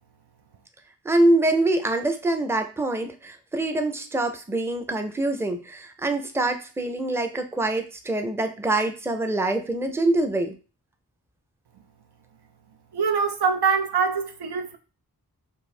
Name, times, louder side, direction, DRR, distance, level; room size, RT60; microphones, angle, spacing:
voice 1, 1.0-10.6, right 2 dB, 5° right, 0.5 m, -24 dB
voice 2, 12.9-14.8, right 5 dB, 85° right, 0.6 m, -24 dB
4.4 x 2.7 x 3.2 m
wide cardioid pair, 90°, 38 cm